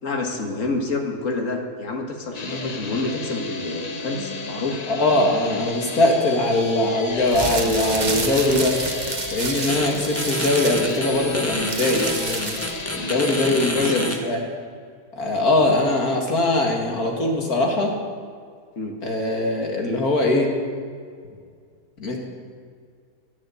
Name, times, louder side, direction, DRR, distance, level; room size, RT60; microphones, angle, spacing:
voice 1, 0.0-4.9 13.4-14.1 18.8-19.0, left 3 dB, 55° left, 3 dB, 2.0 m, -27 dB
sound 1, 2.3-13.7, left 3 dB, 35° left, 0.8 m, -33 dB
voice 2, 4.9-8.8 9.3-12.6 12.9-14.4 15.2-17.9 19.0-20.5 22.0-22.2, left 2 dB, 75° left, 1 dB, 2.5 m, -21 dB
sound 2, 7.2-12.9, right 3 dB, 30° right, 1.1 m, -29 dB
sound 3, 9.7-9.9 10.2-14.1, left 1 dB, 10° left, 1.2 m, -28 dB
11.5 x 11.0 x 8.5 m, 2.1 s
omnidirectional pair, 1.6 m